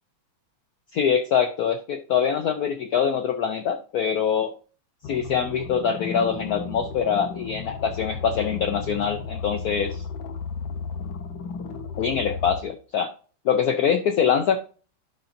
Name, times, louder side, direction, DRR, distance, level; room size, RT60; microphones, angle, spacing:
voice 1, 0.9-4.5 5.1-10.0 12.0-13.1 13.4-14.6, left 7 dB, 90° left, 8 dB, 0.8 m, -24 dB
sound 1, 5.0-12.6, left 5 dB, 70° left, 1.6 m, -34 dB
12.0 x 5.7 x 2.6 m, 0.40 s
omnidirectional pair, 2.4 m